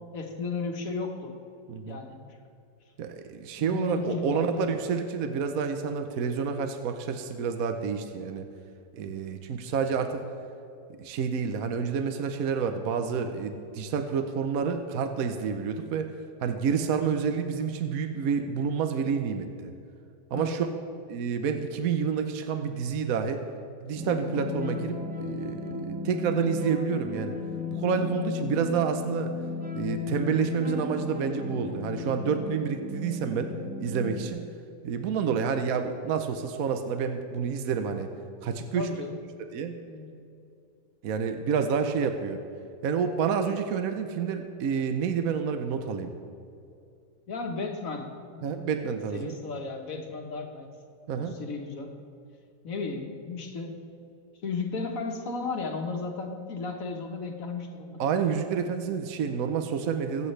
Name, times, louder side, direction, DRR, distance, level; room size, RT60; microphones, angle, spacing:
voice 1, 0.1-1.3 1.8-2.2 3.6-4.7 20.3-20.6 38.7-39.2 39.9-40.2 47.3-50.7 51.1-51.9 52.6-53.8 54.4-58.0, left 4 dB, 55° left, 3 dB, 1.6 m, -34 dB
voice 2, 1.7-2.0 3.0-8.5 8.9-10.2 11.0-16.1 16.4-19.7 20.3-20.7 21.1-23.4 23.8-27.4 27.7-29.3 29.7-33.5 33.8-34.5 34.8-38.1 38.4-39.0 39.5-39.8 41.0-42.4 42.8-46.1 48.4-49.4 51.1-51.4 58.0-60.3, right 6 dB, 65° right, 7 dB, 1.0 m, -29 dB
sound 1, 23.9-34.3, left 4 dB, 10° right, 0.4 m, -35 dB
23.0 x 8.3 x 3.3 m, 2.5 s
omnidirectional pair, 1.8 m